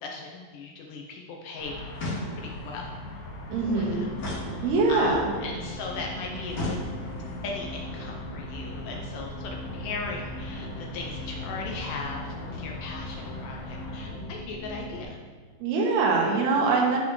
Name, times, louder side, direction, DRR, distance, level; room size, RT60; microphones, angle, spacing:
voice 1, 0.0-1.7 2.3-2.9 3.7-4.1 4.5-6.8 7.4-15.1, left 4 dB, 85° left, 0 dB, 1.8 m, -38 dB
sound 1, 1.6-14.1, left 2 dB, 60° left, 2.4 m, -41 dB
sound 2, 1.9-2.7 4.2-5.1 6.5-7.4, left 2 dB, 45° left, 3.0 m, -34 dB
sound 3, 3.5-15.0, equal, 60° right, 4.6 m, -40 dB
voice 2, 3.5-4.0 4.6-5.2 15.6-17.0, right 3 dB, 75° right, -1 dB, 3.3 m, -23 dB
12.0 x 6.1 x 3.2 m, 1.5 s
omnidirectional pair, 4.8 m